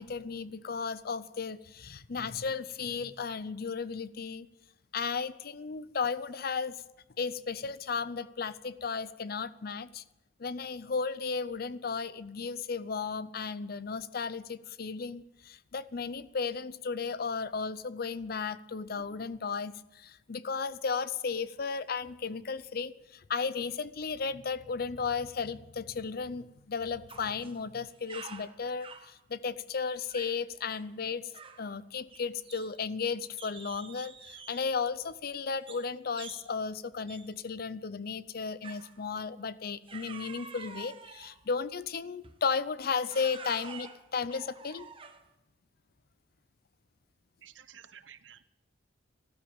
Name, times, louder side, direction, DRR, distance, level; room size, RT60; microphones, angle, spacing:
voice 1, 0.0-4.5 4.9-6.8 7.2-10.0 10.4-31.2 31.6-44.9, left 5 dB, 55° left, 16 dB, 0.6 m, -34 dB
sound 1, 27.1-27.6 27.9-29.1 30.0-30.4 30.7-30.9 31.3-31.7 32.1-33.0 33.4-34.8 35.7-35.9 36.2-36.5 37.1-37.3 38.6-39.0 39.9-41.4 42.2-42.4 43.0-45.3, right 5 dB, 30° right, 1.1 m, -48 dB
voice 2, 47.4-48.4, right 9 dB, 85° right, 13 dB, 0.9 m, -52 dB
14.0 x 12.5 x 7.1 m, 0.91 s
head